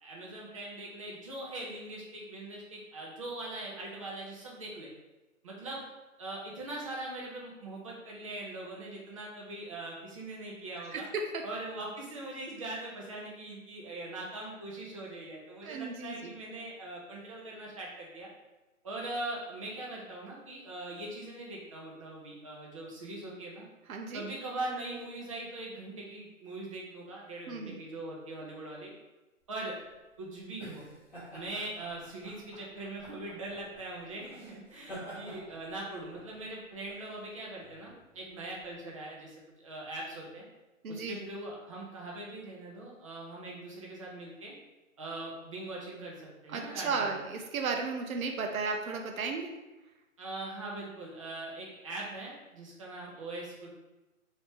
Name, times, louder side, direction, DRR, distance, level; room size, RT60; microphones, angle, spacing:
voice 1, 0.0-4.9 5.4-5.8 6.2-11.1 11.4-18.3 18.8-23.6 24.1-28.9 29.5-29.7 30.2-30.8 31.3-40.5 40.9-44.5 45.0-47.1 50.2-53.7, right 2 dB, 25° right, -4 dB, 0.6 m, -41 dB
voice 2, 10.9-11.5 15.6-16.3 23.9-24.2 27.5-27.8 40.8-41.2 46.5-49.5, right 4 dB, 80° right, 3 dB, 0.6 m, -34 dB
sound 1, 29.6-38.7, right 1 dB, 5° left, 0.9 m, -50 dB
3.0 x 2.8 x 3.4 m, 1.1 s
hypercardioid pair, 150°, 41 cm